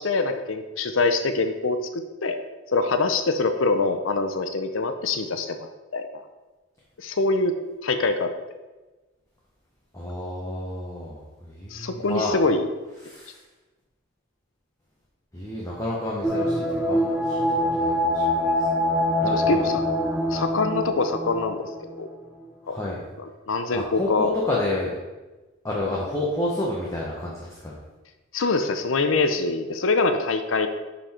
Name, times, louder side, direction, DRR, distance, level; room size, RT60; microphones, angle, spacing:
voice 1, 0.0-2.4 2.7-6.2 7.0-7.6 7.8-8.3 11.7-12.7 19.3-19.8 20.3-22.1 22.7-22.8 23.2-24.3 28.3-30.7, left 3 dB, 80° left, 8 dB, 0.7 m, -24 dB
voice 2, 9.9-12.4 13.0-13.4 15.3-18.7 19.2-19.7 20.0-20.2 22.6-23.0 23.7-24.9 25.6-27.8, left 1 dB, 15° left, -5 dB, 1.0 m, -30 dB
sound 1, 16.2-22.2 22.5-22.6, left 1 dB, 10° right, 0.6 m, -24 dB
9.9 x 4.0 x 4.4 m, 1.2 s
head